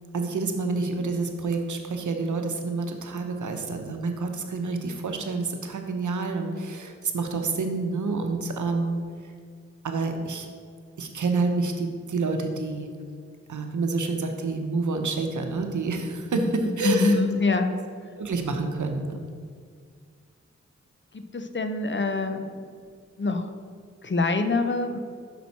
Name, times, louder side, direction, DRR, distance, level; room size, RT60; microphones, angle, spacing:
voice 1, 0.1-9.0 9.8-10.5 11.0-12.9 13.5-17.2 18.2-19.2, right 3 dB, 80° right, 5 dB, 0.8 m, -28 dB
voice 2, 16.3-17.7 21.1-22.7 23.2-23.5 24.0-25.0, left 3 dB, 40° left, 7 dB, 0.7 m, -25 dB
6.1 x 6.0 x 4.1 m, 2.1 s
cardioid pair, 40°, 30 cm